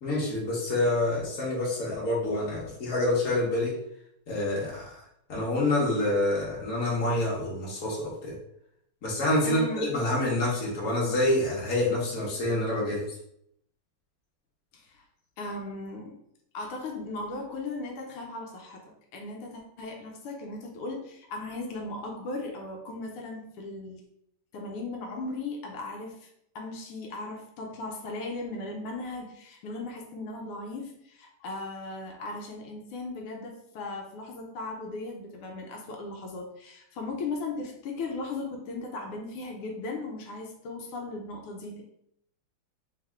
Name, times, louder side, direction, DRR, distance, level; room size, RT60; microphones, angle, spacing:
voice 1, 0.0-3.7 4.3-5.0 5.3-8.3 9.0-13.1, left 1 dB, 45° left, -5 dB, 1.7 m, -27 dB
voice 2, 9.4-9.9 14.7-15.0 15.4-16.2 16.5-24.0 24.5-26.3 26.6-41.8, left 3 dB, 85° left, 1 dB, 1.6 m, -37 dB
3.5 x 3.5 x 3.5 m, 0.73 s
omnidirectional pair, 2.4 m